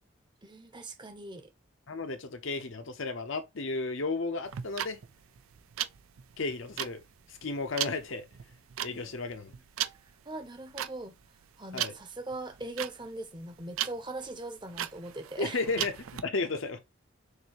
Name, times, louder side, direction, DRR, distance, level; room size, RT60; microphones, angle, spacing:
voice 1, 0.4-1.5 8.9-9.1 10.3-11.1 11.6-15.6, right 2 dB, 20° right, 0.7 m, -40 dB
voice 2, 1.9-5.0 6.4-7.0 7.3-8.3 8.8-9.5 11.7-11.9 15.4-15.9 16.2-16.8, left 3 dB, 70° left, 0.9 m, -33 dB
sound 1, 4.5-16.2, right 11 dB, 85° right, 0.4 m, -37 dB
6.6 x 2.7 x 2.9 m
head